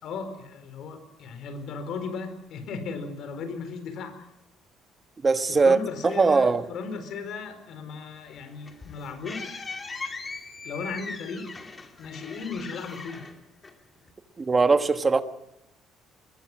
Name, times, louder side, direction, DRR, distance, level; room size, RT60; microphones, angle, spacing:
voice 1, 0.0-4.2 5.5-9.7 10.6-11.5 12.0-13.3, left 4 dB, 60° left, 4.6 m, -36 dB
voice 2, 5.2-5.8 6.0-6.6 14.4-15.2, right 4 dB, 20° right, 1.3 m, -20 dB
sound 1, 8.3-14.1, left 4 dB, 20° left, 2.6 m, -40 dB
24.5 x 21.5 x 6.2 m
cardioid pair, 150°, 0 cm